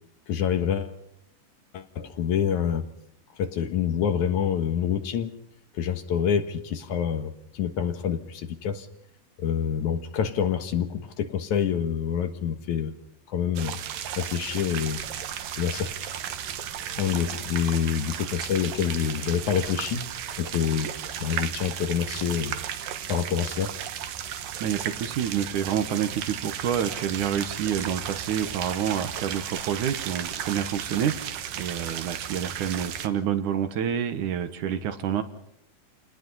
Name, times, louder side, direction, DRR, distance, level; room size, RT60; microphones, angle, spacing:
voice 1, 0.3-1.0 1.7-2.9 3.4-5.3 5.7-8.9 9.4-12.9 13.3-13.8 14.2-15.0 15.6-15.9 17.0-20.0 20.4-20.9 21.2-22.6 23.1-23.8, left 8 dB, 65° left, 8 dB, 2.8 m, -27 dB
sound 1, 13.6-33.1, right 9 dB, 90° right, 3.0 m, -35 dB
voice 2, 24.6-35.2, right 9 dB, 70° right, 10 dB, 2.8 m, -28 dB
29.0 x 19.0 x 5.6 m, 0.73 s
omnidirectional pair, 3.7 m